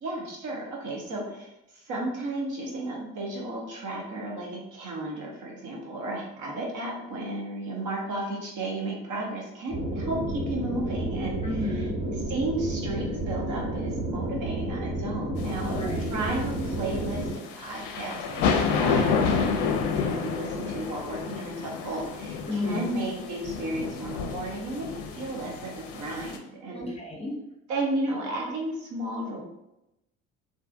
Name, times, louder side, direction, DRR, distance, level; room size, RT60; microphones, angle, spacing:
voice 1, 0.0-11.4 12.3-15.8 16.1-26.8 27.7-29.4, right 2 dB, 55° right, -1 dB, 0.9 m, -33 dB
sound 1, 9.7-17.3, right 1 dB, 70° right, 1.4 m, -31 dB
voice 2, 11.4-12.0 15.6-16.1 22.5-22.9 26.7-27.4, left 2 dB, 15° left, -2 dB, 0.7 m, -32 dB
sound 2, 15.4-26.4, left 5 dB, 65° left, 0.5 m, -30 dB
2.5 x 2.3 x 2.5 m, 0.88 s
hypercardioid pair, 60°, 37 cm